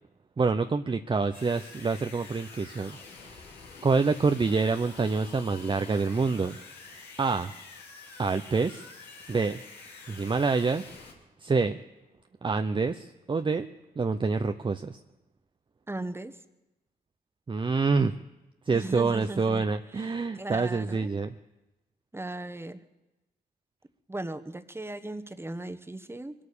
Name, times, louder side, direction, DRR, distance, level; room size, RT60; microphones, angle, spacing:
voice 1, 0.4-3.4 3.8-6.6 7.2-7.5 8.2-8.8 9.3-9.6 10.1-10.8 11.4-11.8 12.4-13.7 14.0-15.0 17.5-18.1 18.7-21.3, right 4 dB, 30° right, 8 dB, 0.7 m, -27 dB
sound 1, 1.3-11.1, left 4 dB, 85° left, 2.8 m, -47 dB
voice 2, 15.9-16.3 18.7-19.7 19.9-21.1 22.1-22.8 24.1-26.3, right 2 dB, 15° right, 9 dB, 1.4 m, -37 dB
23.0 x 8.7 x 6.9 m, 0.99 s
supercardioid pair, 50°, 17 cm